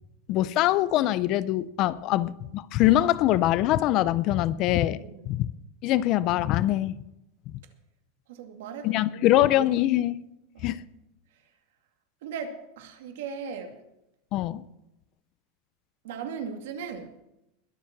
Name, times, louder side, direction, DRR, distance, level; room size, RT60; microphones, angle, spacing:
voice 1, 0.3-5.0 5.3-5.5 5.8-7.0 8.8-10.2 10.6-10.8 14.3-14.6, left 14 dB, 35° left, 18 dB, 0.5 m, -23 dB
voice 2, 8.3-9.4 10.5-10.7 12.2-13.8 16.0-17.2, right 6 dB, 70° right, 6 dB, 2.2 m, -38 dB
21.5 x 7.4 x 5.9 m, 0.87 s
supercardioid pair, 175°, 0 cm